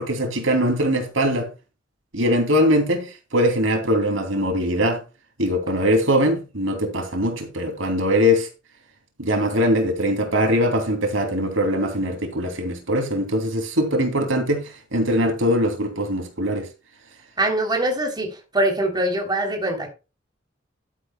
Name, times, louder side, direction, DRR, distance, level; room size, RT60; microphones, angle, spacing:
voice 1, 0.0-1.5 2.1-5.0 5.4-8.5 9.2-16.7, equal, 90° right, 2.8 m, -21 dB
voice 2, 17.4-19.9, right 1 dB, 20° right, 3.1 m, -23 dB
12.0 x 10.0 x 2.2 m
head